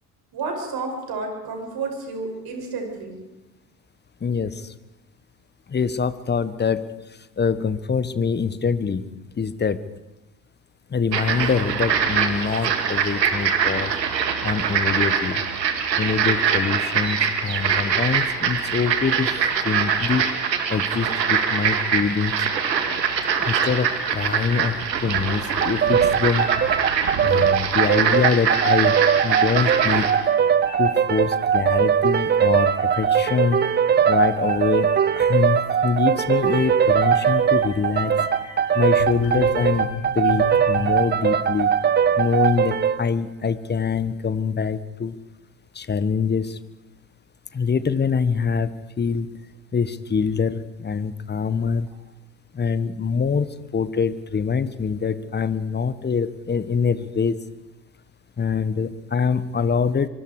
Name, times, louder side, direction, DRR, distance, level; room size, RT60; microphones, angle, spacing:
voice 1, 0.3-3.2, right 4 dB, 45° right, 2 dB, 7.2 m, -30 dB
voice 2, 4.2-4.7 5.7-6.9 7.4-9.0 9.4-9.8 10.9-13.9 14.4-15.4 16.0-19.3 19.6-20.3 20.7-22.3 23.4-26.5 27.2-29.0 29.2-30.1 30.8-33.6 34.1-34.9 35.2-38.2 38.7-41.7 42.2-45.2 45.7-46.6 47.5-49.4 49.7-51.9 52.5-53.5 53.7-57.4 58.4-60.1, left 5 dB, 20° left, 15 dB, 1.3 m, -24 dB
sound 1, 11.1-30.1, right 7 dB, 85° right, 2.0 m, -23 dB
sound 2, 25.2-40.9, left 5 dB, 65° left, 5.1 m, -39 dB
sound 3, 25.6-43.0, right 8 dB, 20° right, 0.6 m, -20 dB
24.5 x 24.5 x 4.9 m, 0.96 s
figure-of-eight pair, 60°, 49 cm